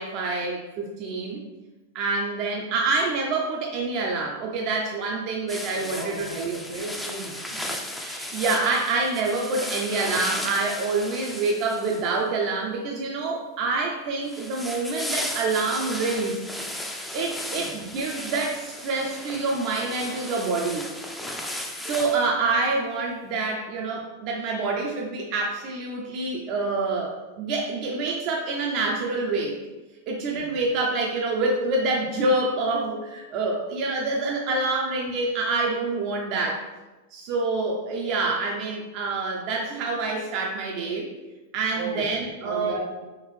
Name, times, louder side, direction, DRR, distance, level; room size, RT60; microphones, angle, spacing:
voice 1, 0.0-1.4 1.9-6.6 8.0-16.4 17.1-20.9 21.8-29.6 30.1-36.6 37.1-41.1 41.5-42.8, right 3 dB, 50° right, -1 dB, 0.5 m, -27 dB
sound 1, 5.5-12.3 14.3-22.3, left 1 dB, 5° left, 0.5 m, -35 dB
voice 2, 5.7-7.6 17.6-17.7 30.3-30.4 41.7-42.1 42.4-42.8, right 2 dB, 85° right, -2 dB, 1.2 m, -35 dB
3.6 x 3.1 x 3.2 m, 1.1 s
hypercardioid pair, 100°, 0 cm